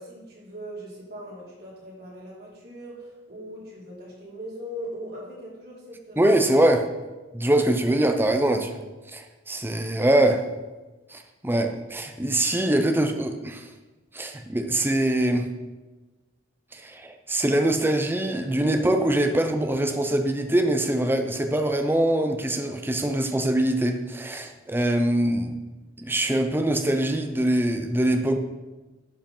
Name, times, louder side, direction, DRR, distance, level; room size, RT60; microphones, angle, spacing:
voice 1, 0.0-6.3, equal, 55° right, -5 dB, 3.4 m, -40 dB
voice 2, 6.2-6.8 7.3-8.8 9.1-10.4 11.1-13.6 14.1-15.5 16.7-25.6 26.0-28.4, right 1 dB, 10° right, 6 dB, 0.7 m, -23 dB
11.5 x 5.1 x 5.5 m, 1.2 s
head